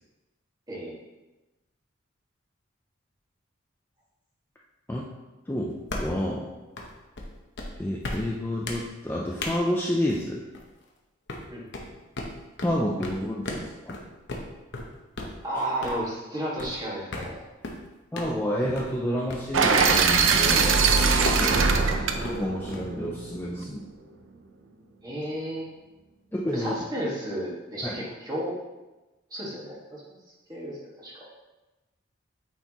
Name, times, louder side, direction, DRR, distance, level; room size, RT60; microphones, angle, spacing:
voice 1, 0.7-1.0 11.5-11.9 15.4-17.4 21.4-21.9 25.0-25.7 26.5-28.5 29.3-30.0 30.5-31.3, right 1 dB, 20° right, -6 dB, 1.7 m, -33 dB
voice 2, 5.5-6.5 7.8-10.4 12.6-14.0 18.1-20.8 21.4-21.6 22.1-23.8 26.3-26.7 27.8-28.0, equal, 10° left, -3 dB, 0.5 m, -29 dB
sound 1, 5.9-6.2 6.8-6.9 7.2-7.3 7.6-7.7 8.0-8.2 8.6-8.8 9.4-9.5 10.1-10.2 10.5-10.8 11.3-11.4 11.7-11.9 12.2-12.3 12.6-12.8 13.0-13.2 13.4-13.6 13.9-14.0 14.3-14.4 14.7-14.9 15.2-15.3 15.8-16.0 16.6-16.8 17.1-17.3 17.6-17.9 18.2-18.3 18.8-18.9 19.3-19.4 19.8-19.9 20.4-20.7 21.2-21.4 22.2-23.1, left 2 dB, 60° left, 0.9 m, -34 dB
sound 2, 19.5-23.6, right 5 dB, 75° right, 0.6 m, -22 dB
8.8 x 4.5 x 3.0 m, 1.1 s
head